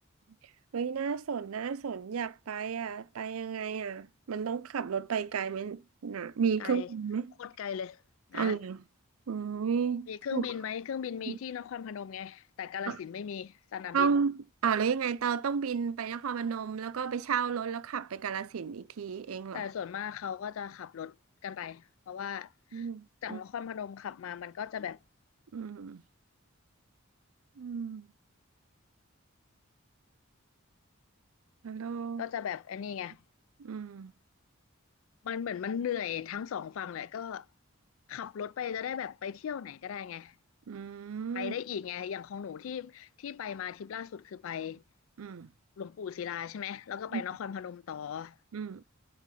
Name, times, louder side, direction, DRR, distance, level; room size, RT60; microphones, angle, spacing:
voice 1, 0.7-7.3 8.3-8.8 9.3-10.5 11.3-11.4 12.9-13.0 13.9-19.6 22.7-23.4 25.5-26.0 27.6-28.1 31.6-32.2 33.6-34.1 40.7-41.6 45.2-45.5 47.1-47.2 48.5-48.8, right 6 dB, 80° right, 0.5 m, -33 dB
voice 2, 7.4-8.0 8.3-8.6 10.1-14.1 19.5-21.2 21.4-22.9 23.2-25.0 32.2-33.2 35.2-37.5 38.1-40.3 41.3-44.8 45.8-48.4, left 8 dB, 65° left, 0.3 m, -37 dB
7.6 x 3.1 x 4.9 m
head